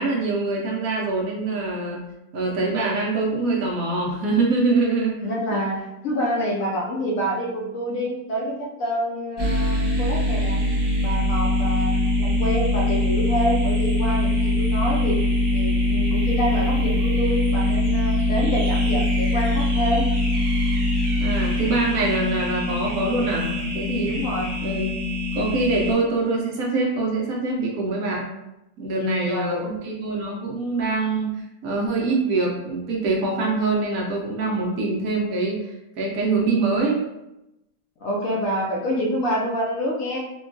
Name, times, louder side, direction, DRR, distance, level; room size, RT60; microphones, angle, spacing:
voice 1, 0.0-2.0 2.3-5.2 5.5-5.6 21.2-24.2 24.6-24.9 25.3-28.3 28.8-37.0, right 3 dB, 70° right, -1 dB, 1.0 m, -24 dB
voice 2, 5.2-5.8 6.0-10.6 11.0-15.2 15.5-20.0 24.1-24.5 29.0-29.7 38.0-40.2, equal, 65° left, -2 dB, 0.9 m, -27 dB
sound 1, 9.4-25.9, left 1 dB, 40° right, 0.3 m, -22 dB
3.6 x 2.2 x 2.4 m, 0.91 s
omnidirectional pair, 1.7 m